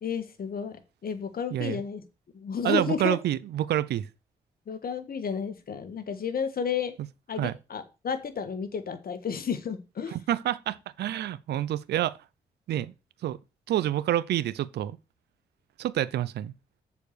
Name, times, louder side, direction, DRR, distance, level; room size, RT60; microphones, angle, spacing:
voice 1, 0.0-2.0 2.3-3.2 4.7-6.9 7.3-10.2, left 6 dB, 60° left, 1.5 m, -32 dB
voice 2, 1.5-1.8 2.6-4.1 7.4-7.5 10.1-12.2 12.7-12.9 13.2-13.4 13.7-15.0 15.8-16.5, right 12 dB, 70° right, 0.5 m, -28 dB
7.0 x 4.5 x 6.6 m
hypercardioid pair, 40°, 18 cm